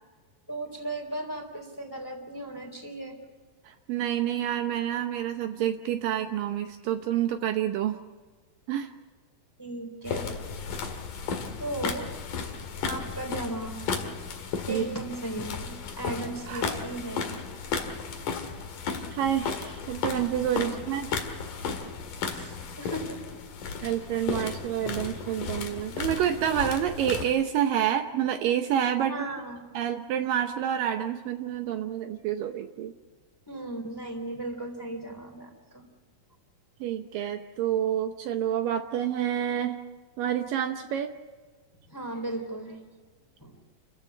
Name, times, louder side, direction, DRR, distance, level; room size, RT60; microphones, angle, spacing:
voice 1, 0.5-3.2 9.6-10.3 10.8-10.9 11.6-12.1 12.8-13.8 14.7-17.3 20.6-20.7 22.3-23.2 29.1-29.7 33.5-35.9 41.9-42.8 43.4-43.6, right 1 dB, 5° left, 4 dB, 2.7 m, -36 dB
voice 2, 3.6-8.0 8.7-8.9 14.7-14.8 16.5-16.7 19.1-21.1 23.8-29.2 29.7-32.9 36.8-39.8 40.2-41.1, right 10 dB, 75° right, 6 dB, 2.4 m, -28 dB
sound 1, 10.0-27.2, left 5 dB, 60° left, 3.3 m, -34 dB
29.5 x 15.0 x 8.3 m, 1.4 s
omnidirectional pair, 4.3 m